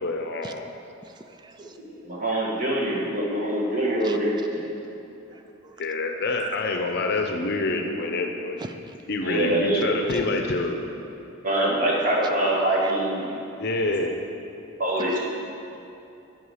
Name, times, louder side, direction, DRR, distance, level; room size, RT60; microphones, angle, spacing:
voice 1, 0.0-0.7 5.8-8.8 9.1-10.9 13.5-14.3, left 3 dB, 55° left, 4 dB, 0.6 m, -27 dB
voice 2, 1.1-1.8 4.0-4.2 5.3-5.8 6.4-6.6 8.6-8.9 10.1-10.2 12.8-12.9, right 4 dB, 20° right, 7 dB, 0.3 m, -40 dB
voice 3, 1.9-4.4 9.2-9.9 11.4-13.4 14.8-15.2, right 1 dB, 40° right, -4 dB, 1.6 m, -24 dB
9.8 x 4.9 x 5.6 m, 2.9 s
head